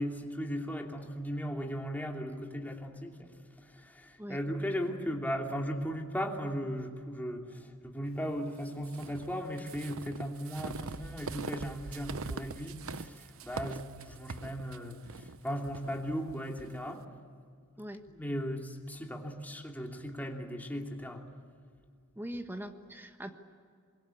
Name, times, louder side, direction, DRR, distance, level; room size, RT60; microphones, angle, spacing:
voice 1, 0.0-17.0 18.1-21.2, equal, 10° left, 1 dB, 2.8 m, -37 dB
sound 1, 8.8-16.7, right 4 dB, 70° right, 0.9 m, -42 dB
voice 2, 22.2-23.3, right 1 dB, 10° right, 6 dB, 1.4 m, -41 dB
26.5 x 22.0 x 8.5 m, 2.1 s
head